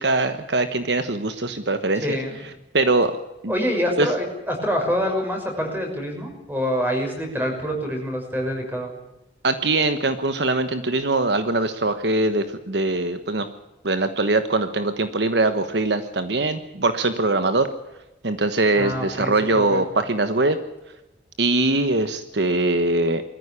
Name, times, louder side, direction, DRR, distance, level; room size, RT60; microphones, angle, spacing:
voice 1, 0.0-2.2 2.7-3.1 3.4-3.5 4.0-4.1 9.4-13.5 13.8-17.7 18.2-20.6 21.4-23.2, right 2 dB, 65° right, 9 dB, 1.3 m, -22 dB
voice 2, 2.0-2.3 3.5-8.9 18.7-19.8, equal, 10° right, 2 dB, 6.0 m, -26 dB
21.5 x 14.5 x 10.0 m, 0.96 s
head